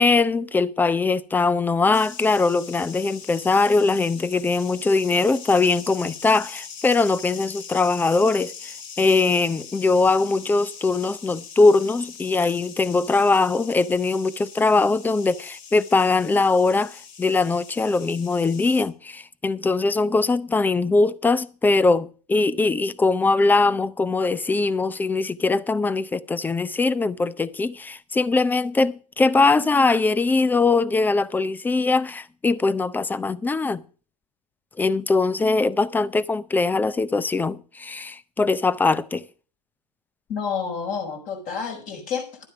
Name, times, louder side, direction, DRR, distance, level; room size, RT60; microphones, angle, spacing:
voice 1, 0.0-33.8 34.8-39.2, left 3 dB, 10° left, 0.6 m, -21 dB
sound 1, 1.9-18.8, left 6 dB, 50° left, 4.0 m, -42 dB
voice 2, 40.3-42.4, left 6 dB, 35° left, 5.1 m, -29 dB
12.0 x 9.8 x 4.9 m
hypercardioid pair, 120°, 21 cm